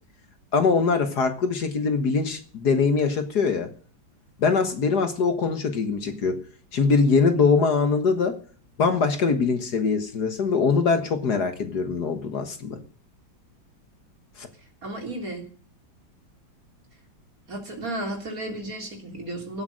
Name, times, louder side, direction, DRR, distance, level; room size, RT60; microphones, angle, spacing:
voice 1, 0.5-3.7 4.4-6.4 6.7-8.4 8.8-12.8 14.4-14.5, left 4 dB, 55° left, 8 dB, 1.9 m, -22 dB
voice 2, 14.8-15.5 17.5-19.6, right 1 dB, 45° right, 3 dB, 3.8 m, -33 dB
16.5 x 8.5 x 6.3 m, 0.43 s
omnidirectional pair, 2.1 m